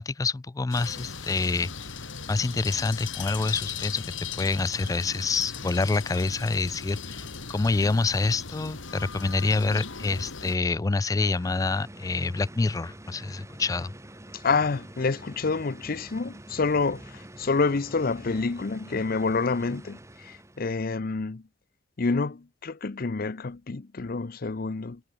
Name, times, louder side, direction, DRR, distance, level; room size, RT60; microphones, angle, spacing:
voice 1, 0.0-2.0 2.3-7.3 7.5-13.9, left 3 dB, 20° left, 0.3 m, -27 dB
sound 1, 0.7-10.6, left 5 dB, 90° left, 2.5 m, -38 dB
sound 2, 10.8-20.8, right 1 dB, 15° right, 2.0 m, -46 dB
voice 2, 14.3-21.4 22.0-25.0, left 4 dB, 50° left, 0.6 m, -28 dB
head